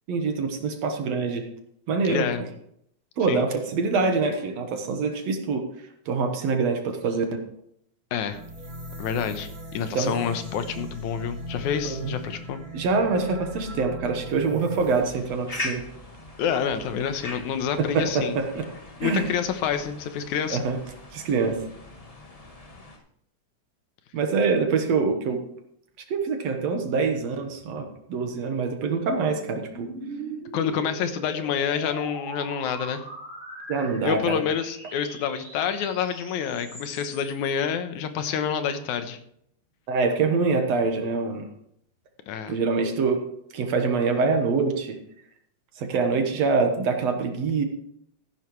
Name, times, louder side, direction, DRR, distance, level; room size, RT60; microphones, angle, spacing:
voice 1, 0.1-1.5 1.9-2.2 3.2-5.7 6.1-7.4 9.9-10.2 12.0-12.1 12.7-15.8 17.9-18.7 19.0-19.3 20.5-20.8 21.1-21.6 24.1-25.4 26.1-29.9 33.7-34.4 39.9-41.5 42.5-43.2 43.5-45.0 45.8-47.6, right 4 dB, 65° right, 5 dB, 2.4 m, -25 dB
voice 2, 2.0-2.4 3.3-3.4 8.1-8.4 9.0-12.6 16.4-18.4 19.0-20.6 30.5-33.0 34.0-39.2 42.3-42.6, left 7 dB, 85° left, 9 dB, 2.4 m, -28 dB
sound 1, 8.3-15.0, equal, 30° right, 3.4 m, -38 dB
sound 2, 14.8-23.0, left 2 dB, 65° left, 0.3 m, -41 dB
sound 3, 27.9-37.5, right 1 dB, 10° left, 4.4 m, -41 dB
14.5 x 10.5 x 3.2 m, 0.71 s
omnidirectional pair, 3.3 m